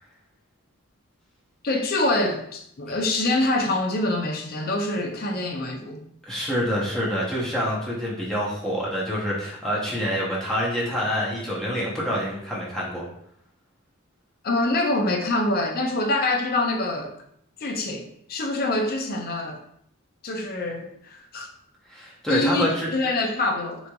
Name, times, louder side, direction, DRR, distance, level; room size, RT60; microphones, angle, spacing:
voice 1, 1.6-6.0 14.4-17.1 17.6-19.6 20.2-21.5 22.3-23.8, left 2 dB, 45° left, 3 dB, 0.5 m, -25 dB
voice 2, 6.3-13.0 21.9-22.9, equal, 5° left, -6 dB, 0.7 m, -26 dB
3.7 x 3.0 x 2.3 m, 0.71 s
head